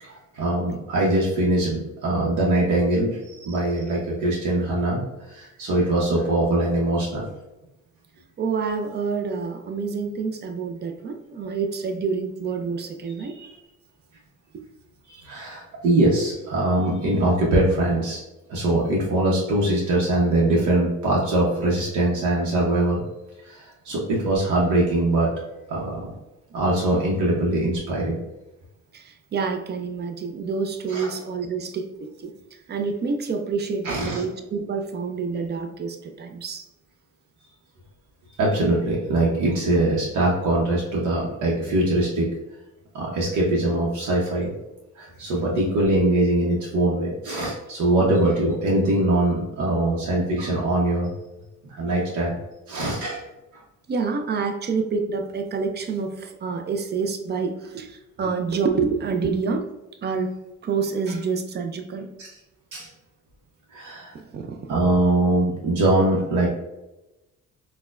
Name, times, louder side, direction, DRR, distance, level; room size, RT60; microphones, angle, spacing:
voice 1, 0.0-5.0 5.3-7.2 13.4-13.5 15.1-18.2 18.5-23.0 23.5-25.3 25.7-26.1 26.5-28.2 30.9-31.1 33.8-34.2 38.4-42.3 42.9-44.5 45.0-51.1 51.8-52.4 52.7-53.2 62.2-62.3 62.7-62.9 63.7-64.1 64.7-66.5, right 1 dB, 75° right, -4 dB, 0.8 m, -22 dB
voice 2, 8.4-13.3 28.9-32.3 32.7-36.6 53.9-59.7 60.0-60.3 60.6-62.1 64.1-64.7, right 5 dB, 35° right, 5 dB, 0.4 m, -27 dB
4.0 x 2.2 x 2.4 m, 0.98 s
cardioid pair, 90°, 30 cm